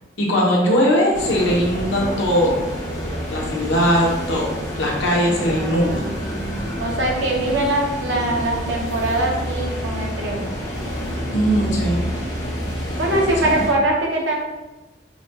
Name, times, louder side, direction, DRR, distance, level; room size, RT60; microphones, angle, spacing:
voice 1, 0.2-2.6 3.3-4.5 4.8-6.0 11.3-12.1 13.4-13.6, equal, 75° left, -2 dB, 0.9 m, -19 dB
sound 1, 1.1-13.7, equal, 20° left, 0.7 m, -28 dB
voice 2, 5.4-10.5 13.0-14.4, right 1 dB, 80° right, -1 dB, 0.8 m, -23 dB
5.0 x 2.2 x 2.8 m, 1.1 s
head